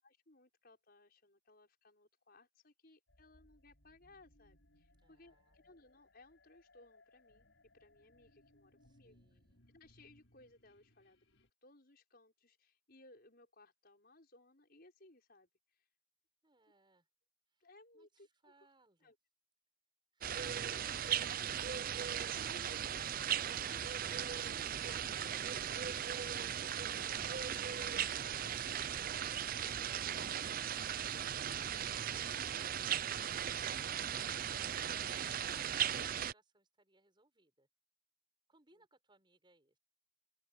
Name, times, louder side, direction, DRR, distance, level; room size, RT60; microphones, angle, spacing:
voice 1, 0.0-7.5 7.7-9.4 9.7-11.2 11.6-15.9 17.6-18.5 19.0-19.2 38.7-38.9, left 2 dB, 50° left, 5.9 m, -64 dB
sound 1, 3.1-11.5, left 1 dB, 70° left, 7.2 m, -69 dB
voice 2, 5.0-5.7 8.8-9.6 16.4-17.1 17.5-17.7 17.9-19.1 34.7-37.7 38.5-39.8, right 2 dB, 25° right, 7.3 m, -70 dB
sound 2, 20.2-36.3, right 9 dB, 45° right, 0.5 m, -38 dB
open air
head